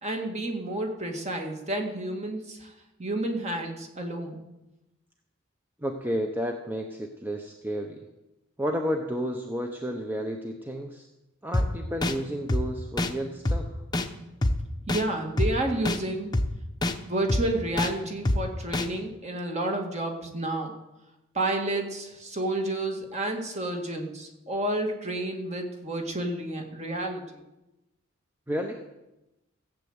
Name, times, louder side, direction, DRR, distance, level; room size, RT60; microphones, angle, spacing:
voice 1, 0.0-2.7 3.0-4.4 14.9-16.3 17.1-20.7 21.3-27.4, right 1 dB, 30° right, 3 dB, 2.0 m, -30 dB
voice 2, 5.8-8.1 8.6-11.1 11.4-13.8 28.5-28.9, equal, 10° right, 3 dB, 0.8 m, -31 dB
sound 1, 11.5-11.7 12.0-12.1 12.5-12.6 13.0-13.1 13.5-13.6 13.9-14.1 14.4-14.5 14.9-15.0 15.4-15.5 15.9-16.0 16.3-16.5 16.8-16.9 17.3-17.4 17.8-17.9 18.3-18.4 18.7-18.9, left 1 dB, 20° left, 0.9 m, -24 dB
15.5 x 7.8 x 8.0 m, 0.98 s
head